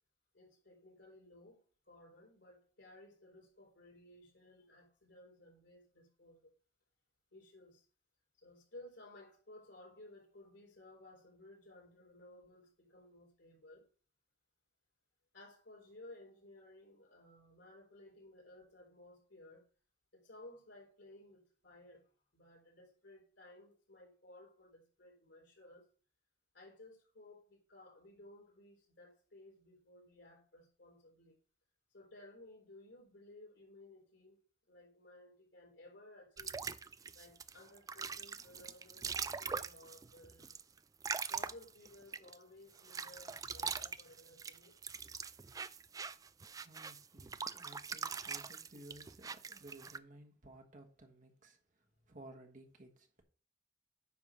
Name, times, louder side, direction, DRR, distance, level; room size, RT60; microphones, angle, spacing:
voice 1, 0.3-6.5 7.3-7.9 8.4-13.9 15.3-19.6 20.1-25.9 26.5-31.4 31.9-34.4 34.7-36.6 37.1-40.6 41.3-44.8, left 1 dB, 65° left, 4.4 m, -58 dB
sound 1, 36.4-42.4 42.8-50.0, right 5 dB, 20° right, 0.3 m, -42 dB
voice 2, 46.6-51.6 52.1-53.2, right 1 dB, 45° right, 1.4 m, -56 dB
9.6 x 3.6 x 6.1 m
head